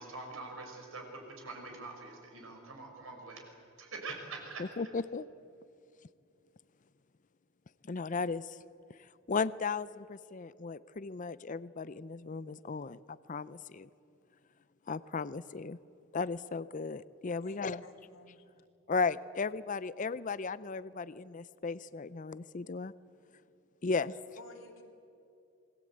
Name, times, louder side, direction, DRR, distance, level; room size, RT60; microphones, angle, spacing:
voice 1, 0.0-3.5 3.8-4.7, right 3 dB, 70° right, 2 dB, 5.7 m, -44 dB
voice 2, 4.6-5.3 7.8-8.6 9.3-13.9 14.9-15.8 16.1-17.8 18.9-22.9 23.8-24.1, left 4 dB, 35° left, 16 dB, 0.5 m, -35 dB
voice 3, 17.4-18.5 24.4-24.8, left 2 dB, 70° left, 1 dB, 3.1 m, -53 dB
27.0 x 20.5 x 8.6 m, 2.6 s
head